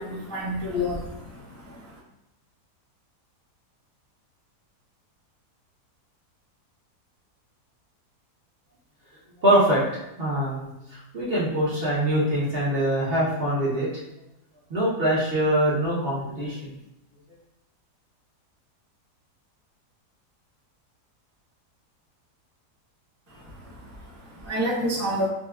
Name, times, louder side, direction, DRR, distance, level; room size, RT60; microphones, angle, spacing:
voice 1, 0.0-2.0 23.3-25.3, equal, 15° right, -7 dB, 0.6 m, -30 dB
voice 2, 9.4-9.8 10.2-14.0 14.7-16.8, right 1 dB, 45° right, -7 dB, 0.9 m, -24 dB
5.8 x 2.2 x 2.3 m, 0.85 s
omnidirectional pair, 1.8 m